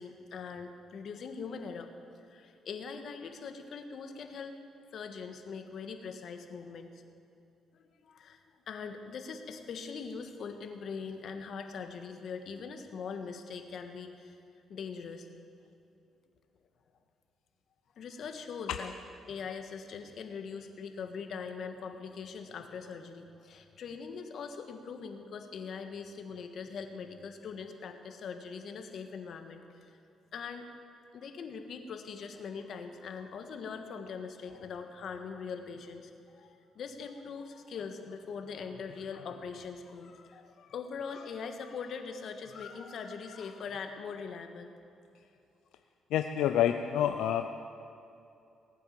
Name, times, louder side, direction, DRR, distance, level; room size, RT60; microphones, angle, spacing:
voice 1, 0.0-1.9 2.3-4.6 4.9-6.9 7.7-14.4 14.7-15.3 17.9-18.9 19.3-30.0 30.3-30.7 31.1-36.1 36.4-44.7, left 5 dB, 65° left, 6 dB, 1.5 m, -42 dB
voice 2, 46.1-47.7, left 10 dB, 85° left, 7 dB, 0.5 m, -28 dB
19.0 x 9.3 x 7.5 m, 2.7 s
cardioid pair, 90°, 0 cm